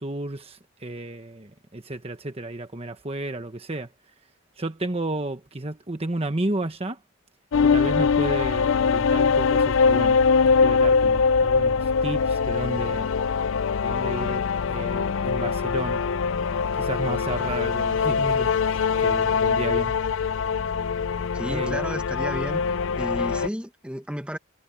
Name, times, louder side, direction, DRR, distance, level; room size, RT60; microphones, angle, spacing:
voice 1, 0.0-3.9 4.6-7.0 7.6-13.1 13.8-16.0 16.8-19.9 21.5-21.8, right 2 dB, 30° right, 1.2 m, -32 dB
sound 1, 7.5-23.5, left 5 dB, 65° left, 0.4 m, -22 dB
voice 2, 21.3-22.6 23.0-24.4, equal, 5° right, 1.6 m, -32 dB
head